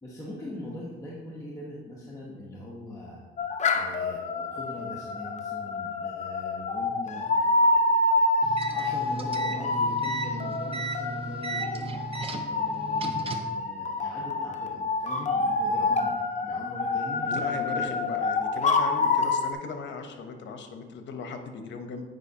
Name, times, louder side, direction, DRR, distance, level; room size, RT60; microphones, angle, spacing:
voice 1, 0.0-3.2 3.7-7.5 8.7-11.9 12.5-18.0, left 1 dB, 15° left, -5 dB, 1.2 m, -41 dB
sound 1, 3.4-19.5, left 3 dB, 35° left, 0.7 m, -27 dB
sound 2, 8.4-13.6, right 4 dB, 30° right, 0.7 m, -36 dB
voice 2, 17.2-22.1, left 4 dB, 70° left, 6 dB, 0.9 m, -37 dB
8.9 x 5.0 x 2.9 m, 1.3 s
cardioid pair, 90°, 20 cm